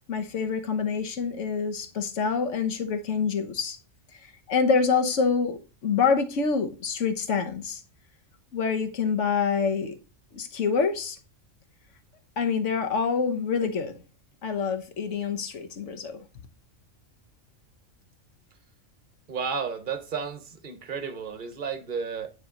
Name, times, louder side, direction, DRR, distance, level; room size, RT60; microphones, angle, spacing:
voice 1, 0.1-3.8 4.5-7.8 8.5-9.9 10.3-11.2 12.4-13.9 14.4-16.2, left 5 dB, 70° left, 1.3 m, -26 dB
voice 2, 19.3-22.3, right 6 dB, 45° right, 1.0 m, -32 dB
9.8 x 3.5 x 3.8 m
omnidirectional pair, 1.3 m